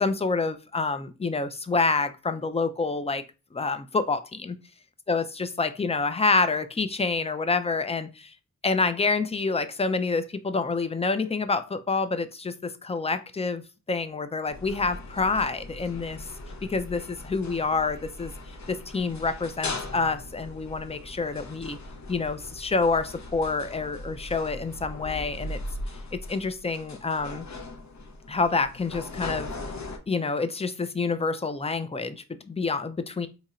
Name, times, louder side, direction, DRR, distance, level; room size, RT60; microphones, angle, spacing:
voice 1, 0.0-3.2 3.6-3.8 4.1-4.2 5.1-5.2 5.6-8.1 8.6-10.2 10.5-11.6 11.9-12.2 12.9-13.6 13.9-16.2 16.7-17.0 17.3-18.3 18.9-21.8 22.1-22.4 22.6-23.0 23.3-25.6 26.3-27.4 28.3-29.5 30.1-30.7 31.0-32.1 32.6-33.3, left 4 dB, 20° left, 11 dB, 0.4 m, -27 dB
sound 1, 14.5-30.0, left 2 dB, 55° left, 0.7 m, -39 dB
2.9 x 2.5 x 4.2 m, 0.30 s
wide cardioid pair, 75°, 34 cm